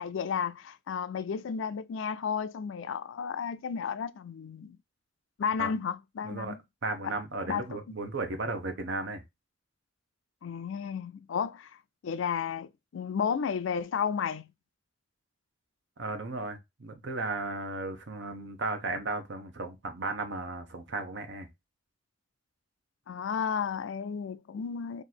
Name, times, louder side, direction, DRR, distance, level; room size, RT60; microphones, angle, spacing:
voice 1, 0.0-4.8 5.4-6.6 7.0-7.1 7.5-8.0 10.4-11.7 12.0-14.5 23.1-25.0, left 6 dB, 75° left, 0.4 m, -33 dB
voice 2, 6.8-9.2 16.0-21.5, right 3 dB, 65° right, 0.8 m, -35 dB
3.1 x 2.6 x 4.0 m
head